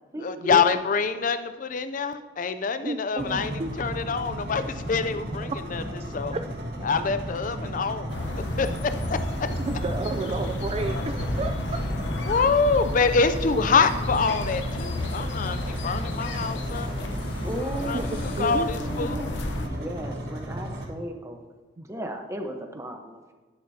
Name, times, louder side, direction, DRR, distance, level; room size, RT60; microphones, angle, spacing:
voice 1, 0.2-3.5 3.8-5.8 6.1-6.4 6.8-8.1 8.6-8.7 9.1-9.2 12.2-16.9 17.8-19.4, left 5 dB, 40° left, 10 dB, 0.4 m, -25 dB
voice 2, 2.8-3.7 6.3-6.4 9.5-11.6 17.9-18.7 19.0-19.3, right 2 dB, 30° right, 7 dB, 0.3 m, -31 dB
sound 1, 3.2-20.9, equal, 55° right, 1.7 m, -34 dB
sound 2, 8.1-19.7, left 1 dB, 60° left, 0.9 m, -32 dB
sound 3, 13.8-19.5, left 1 dB, 25° left, 1.7 m, -43 dB
voice 3, 17.4-21.4 21.9-23.2, equal, 15° right, 4 dB, 1.0 m, -36 dB
11.0 x 10.5 x 2.8 m, 1.3 s
head